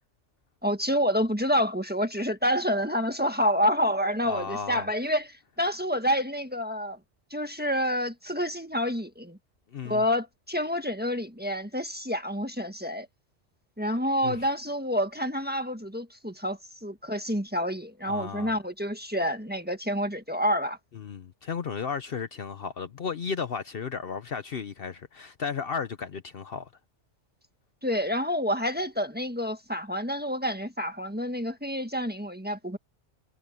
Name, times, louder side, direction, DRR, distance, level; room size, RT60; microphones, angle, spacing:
voice 1, 0.6-7.0 7.3-9.4 9.8-13.1 13.8-20.8 27.8-32.8, equal, 10° right, 1.4 m, -28 dB
voice 2, 4.2-4.9 9.7-10.0 14.2-14.4 18.0-18.5 20.9-26.7, left 6 dB, 55° left, 1.0 m, -34 dB
omnidirectional pair, 1.2 m